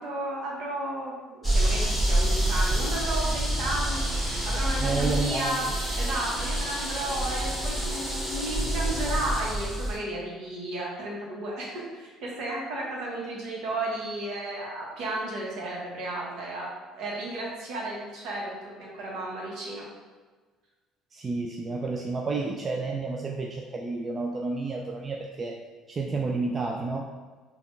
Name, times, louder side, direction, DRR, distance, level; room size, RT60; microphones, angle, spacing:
voice 1, 0.0-19.9, right 1 dB, 65° right, -3 dB, 1.0 m, -33 dB
sound 1, 1.4-10.0, right 1 dB, 15° right, 1.4 m, -27 dB
voice 2, 4.8-5.5 21.1-25.6 25.9-27.0, right 3 dB, 35° right, 1 dB, 0.3 m, -30 dB
5.0 x 2.3 x 2.5 m, 1.4 s
hypercardioid pair, 60°, 0 cm